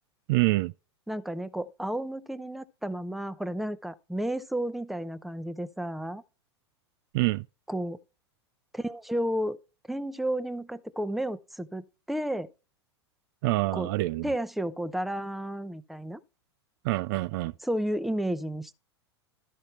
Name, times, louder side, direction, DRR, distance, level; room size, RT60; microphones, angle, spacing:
voice 1, 0.3-0.7 7.1-7.5 13.4-14.3 16.8-17.5, right 20 dB, 50° right, 0.4 m, -26 dB
voice 2, 1.1-6.2 7.7-8.0 8.7-9.6 9.9-12.5 13.7-13.9 14.2-16.2 17.6-18.7, right 1 dB, ahead, 0.7 m, -32 dB
12.5 x 5.4 x 4.4 m
hypercardioid pair, 95°, 14 cm